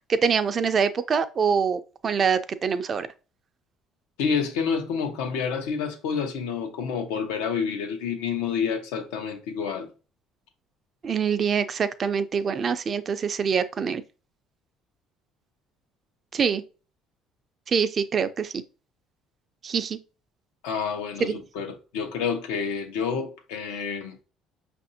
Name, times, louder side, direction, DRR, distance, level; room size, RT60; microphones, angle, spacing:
voice 1, 0.1-3.1 11.0-14.0 16.3-16.6 17.7-18.5 19.6-20.0 21.2-21.4, right 6 dB, 40° right, 0.4 m, -24 dB
voice 2, 4.2-9.9 20.6-24.2, left 6 dB, 90° left, 0.8 m, -29 dB
5.5 x 2.6 x 2.7 m
supercardioid pair, 85°, 0 cm